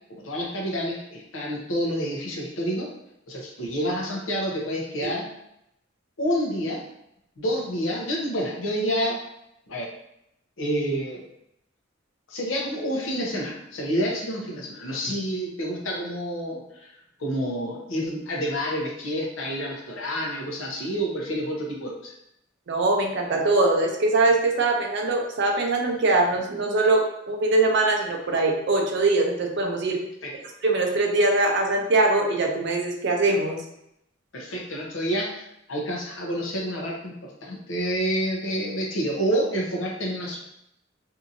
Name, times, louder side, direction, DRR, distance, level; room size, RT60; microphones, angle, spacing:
voice 1, 0.1-2.9 3.3-5.3 6.2-6.8 7.4-9.2 9.7-9.9 10.6-11.2 12.3-16.9 17.2-22.1 30.2-30.3 34.3-35.4 35.7-40.4, equal, 75° left, -2 dB, 0.7 m, -28 dB
voice 2, 22.7-30.0 30.6-33.6, right 2 dB, 60° right, 1 dB, 0.5 m, -22 dB
2.8 x 2.6 x 2.5 m, 0.80 s
head